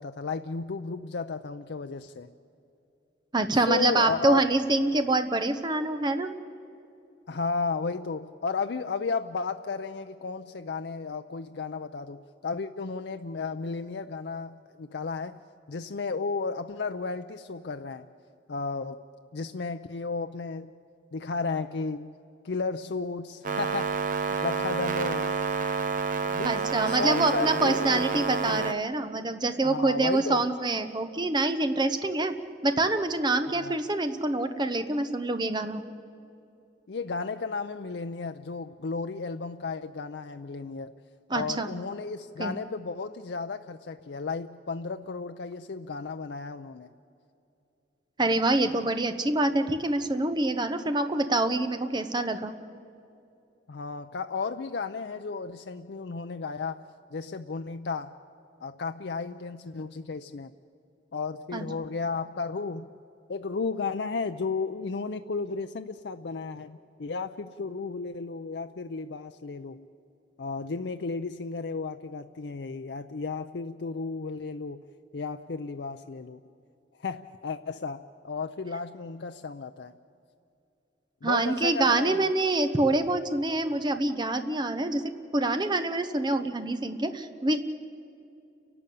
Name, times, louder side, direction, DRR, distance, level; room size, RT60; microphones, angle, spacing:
voice 1, 0.0-2.3 3.5-4.4 7.3-15.4 15.7-18.1 18.5-19.0 19.3-20.7 21.1-22.1 22.4-24.0 24.3-25.4 26.2-28.6 29.6-30.4 33.5-33.8 36.9-40.9 41.3-46.9 53.7-56.8 57.1-58.2 58.6-60.5 61.1-62.9 63.3-69.9 70.4-74.8 75.1-76.4 77.0-79.9 81.2-82.2, left 4 dB, 65° left, 8 dB, 0.5 m, -33 dB
voice 2, 3.3-6.3 26.4-32.4 32.6-35.8 41.3-41.7 42.4-42.5 48.2-52.5 61.5-61.7 81.2-87.6, right 2 dB, 25° right, 9 dB, 1.0 m, -26 dB
sound 1, 23.4-28.7, right 5 dB, 45° right, 1.0 m, -29 dB
30.0 x 12.0 x 8.5 m, 2.6 s
head